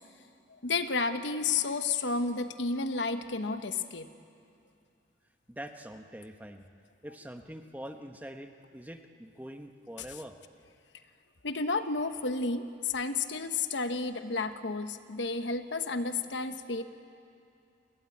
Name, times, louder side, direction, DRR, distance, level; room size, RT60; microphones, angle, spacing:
voice 1, 0.6-4.1 10.1-10.2 11.4-16.8, left 4 dB, 80° left, 9 dB, 1.1 m, -31 dB
voice 2, 5.5-6.7 7.0-10.4, equal, 10° right, 6 dB, 1.0 m, -44 dB
28.5 x 18.5 x 8.5 m, 2.5 s
head